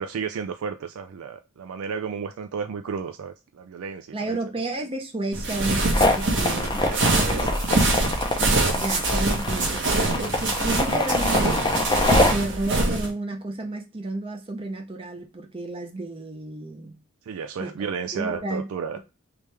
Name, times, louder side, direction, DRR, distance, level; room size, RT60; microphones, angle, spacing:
voice 1, 0.0-4.4 6.7-7.6 8.0-8.1 17.3-19.0, right 6 dB, 80° right, 0.3 m, -33 dB
voice 2, 4.1-6.9 8.7-11.5 12.3-17.0 17.6-18.7, right 2 dB, 25° right, 0.6 m, -32 dB
sound 1, 5.3-13.1, right 2 dB, 55° right, 1.1 m, -24 dB
sound 2, 5.9-12.3, left 2 dB, 20° left, 0.6 m, -24 dB
3.4 x 3.2 x 3.2 m
head